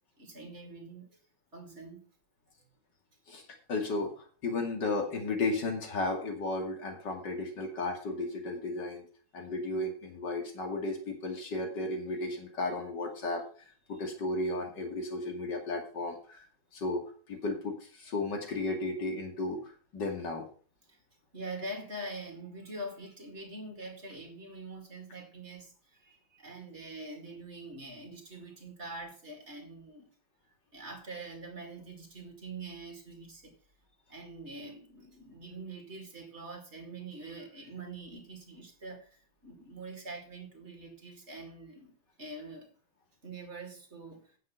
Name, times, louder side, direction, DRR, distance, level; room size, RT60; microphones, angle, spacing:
voice 1, 0.2-1.2 1.5-2.1 13.9-14.0 20.9-21.0 21.3-30.1 30.7-33.5 34.1-42.7 43.2-44.4, right 2 dB, 35° right, 2.4 m, -44 dB
voice 2, 3.7-9.0 9.3-13.4 13.9-16.4 16.7-20.5, left 2 dB, 60° left, 3.0 m, -34 dB
9.2 x 7.5 x 5.8 m
omnidirectional pair, 2.2 m